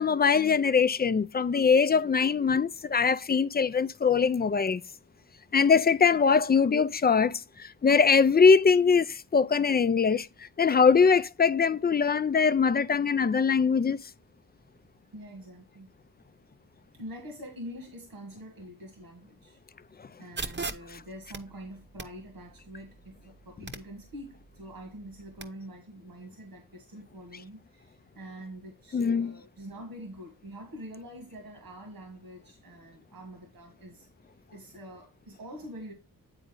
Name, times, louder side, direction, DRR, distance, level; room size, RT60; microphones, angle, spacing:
voice 1, 0.0-4.8 5.5-14.0 28.9-29.3, left 5 dB, 30° left, 0.4 m, -22 dB
voice 2, 15.1-15.9 16.9-19.6 20.2-35.9, equal, 85° right, 1.8 m, -45 dB
sound 1, 20.4-25.4, right 3 dB, 30° right, 0.8 m, -42 dB
9.0 x 4.1 x 3.8 m
wide cardioid pair, 80°, 35 cm